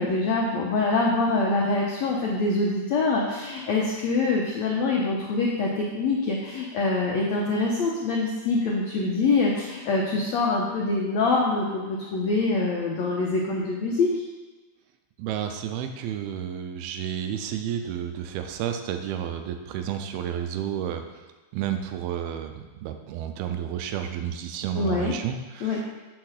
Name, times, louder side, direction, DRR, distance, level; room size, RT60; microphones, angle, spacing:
voice 1, 0.0-14.2 24.8-25.1 25.6-25.8, left 3 dB, 75° left, -3 dB, 1.6 m, -25 dB
voice 2, 15.2-21.0 21.5-26.1, right 9 dB, 90° right, 6 dB, 2.6 m, -31 dB
8.5 x 4.6 x 6.4 m, 1.2 s
omnidirectional pair, 4.4 m